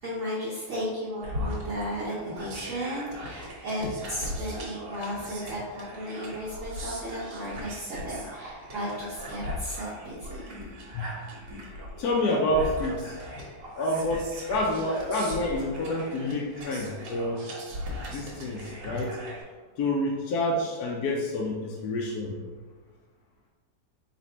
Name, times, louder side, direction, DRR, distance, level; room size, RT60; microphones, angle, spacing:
voice 1, 0.0-10.6, equal, 55° right, -9 dB, 1.1 m, -34 dB
sound 1, 1.2-19.4, left 1 dB, 85° right, 1.7 m, -39 dB
voice 2, 12.0-13.2 13.8-17.4 18.1-19.2 19.8-22.3, left 1 dB, 70° left, -2 dB, 1.0 m, -28 dB
4.1 x 2.5 x 4.2 m, 1.4 s
omnidirectional pair, 1.9 m